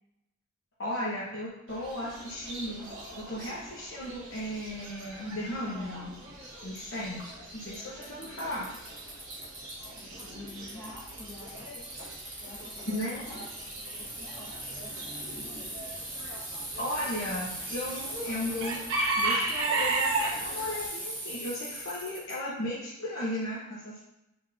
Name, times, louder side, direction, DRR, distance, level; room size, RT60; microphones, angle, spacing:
voice 1, 0.8-6.1 6.6-7.2 7.5-8.7 12.9-13.2 16.8-18.8 19.2-24.0, left 1 dB, 55° left, -8 dB, 1.0 m, -35 dB
Chicken rooster / Bird, 1.7-20.9, right 2 dB, 60° right, 1.3 m, -37 dB
Bicycle, 6.7-6.8 7.7-7.8 8.0-10.2 10.5-22.3, right 1 dB, 10° right, 1.0 m, -40 dB
voice 2, 9.9-11.9 12.4-13.5 13.9-15.9, left 2 dB, 15° left, -12 dB, 1.0 m, -48 dB
4.4 x 4.0 x 2.6 m, 0.87 s
head